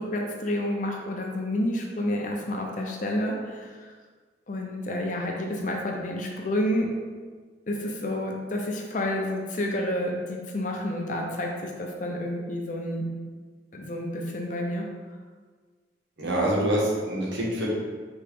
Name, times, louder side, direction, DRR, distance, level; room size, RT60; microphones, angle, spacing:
voice 1, 0.0-3.9 4.5-6.9 7.7-13.1 13.7-14.8, left 1 dB, 45° left, 1 dB, 0.6 m, -29 dB
voice 2, 16.2-17.7, right 1 dB, 80° right, -4 dB, 1.1 m, -25 dB
4.4 x 3.0 x 3.4 m, 1.5 s
head